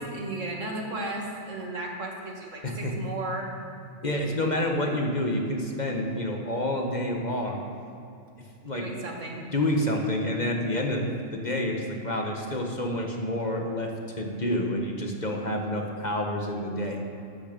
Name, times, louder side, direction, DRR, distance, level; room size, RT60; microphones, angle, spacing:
voice 1, 0.0-3.5 8.7-9.4, right 2 dB, 75° right, 0 dB, 2.3 m, -35 dB
voice 2, 2.6-3.0 4.0-7.6 8.6-8.9 9.5-17.0, left 1 dB, 35° left, 2 dB, 1.5 m, -28 dB
15.0 x 12.5 x 5.3 m, 2.6 s
omnidirectional pair, 1.3 m